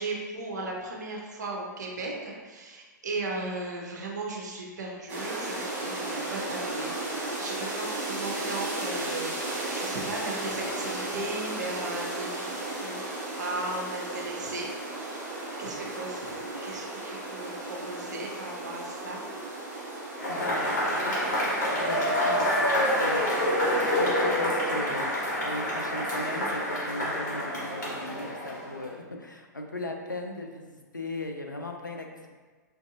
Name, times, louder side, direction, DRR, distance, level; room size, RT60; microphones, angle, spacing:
voice 1, 0.0-19.2, right 2 dB, 65° right, -1 dB, 0.7 m, -37 dB
sound 1, 5.1-24.1, right 2 dB, 15° right, 1.0 m, -35 dB
Cheering / Applause / Crowd, 20.2-28.8, equal, 65° left, 1.4 m, -27 dB
voice 2, 20.3-21.4 21.8-32.3, left 2 dB, 85° left, 2 dB, 0.4 m, -37 dB
4.6 x 2.6 x 2.4 m, 1.4 s
figure-of-eight pair, 105°, 10 cm